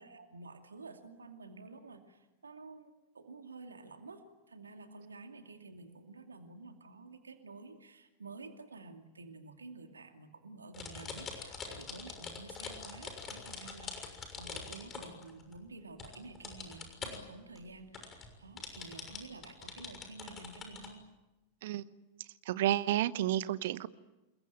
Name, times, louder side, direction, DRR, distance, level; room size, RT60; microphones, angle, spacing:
voice 1, 0.0-21.0, right 3 dB, 75° right, 6 dB, 2.6 m, -51 dB
sound 1, 10.7-15.7 16.0-17.2 17.6-17.7 17.9-20.9, left 5 dB, 25° left, 6.5 m, -44 dB
voice 2, 22.5-23.9, right 13 dB, 55° right, 16 dB, 1.1 m, -31 dB
28.5 x 22.5 x 9.1 m, 1.0 s
figure-of-eight pair, 90°, 0 cm